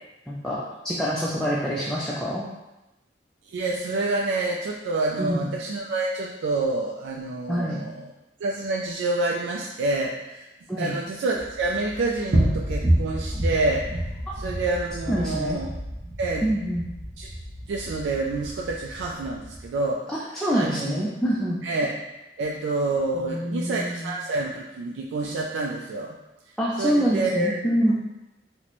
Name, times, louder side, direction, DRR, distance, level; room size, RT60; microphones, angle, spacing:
voice 1, 0.3-2.4 5.2-5.5 7.5-7.8 10.7-11.0 14.3-14.4 15.1-15.6 16.4-16.9 20.1-21.6 23.1-24.1 26.6-27.9, equal, 5° left, -6 dB, 0.3 m, -26 dB
voice 2, 3.5-8.1 8.4-10.4 10.8-13.8 14.4-15.7 16.2-16.4 17.2-17.3 17.7-20.0 20.5-21.0 21.6-22.0 22.4-26.2 26.8-27.6, right 2 dB, 85° right, -2 dB, 0.3 m, -27 dB
sound 1, 11.3-19.7, right 1 dB, 45° right, 0.7 m, -29 dB
3.0 x 2.1 x 4.0 m, 0.99 s
head